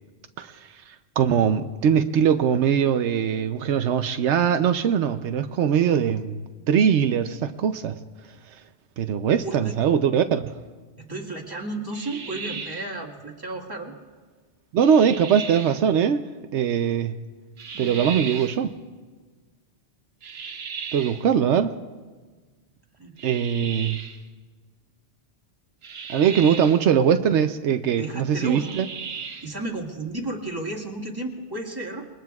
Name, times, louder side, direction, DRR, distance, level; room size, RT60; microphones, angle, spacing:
voice 1, 0.4-8.0 9.0-10.5 14.7-16.2 16.5-17.2 17.8-18.7 20.9-21.7 23.2-24.0 26.1-28.9, right 8 dB, 85° right, 9 dB, 0.9 m, -21 dB
voice 2, 9.3-9.7 11.0-13.9 23.0-23.2 26.2-26.5 28.0-28.7 29.4-32.0, right 2 dB, 20° right, -1 dB, 2.0 m, -33 dB
sound 1, 11.9-13.0 14.8-15.8 17.6-18.6 20.2-21.3 23.2-24.2 25.8-26.9 28.5-29.6, right 6 dB, 65° right, 1.1 m, -36 dB
28.0 x 21.5 x 2.4 m, 1.4 s
omnidirectional pair, 1.1 m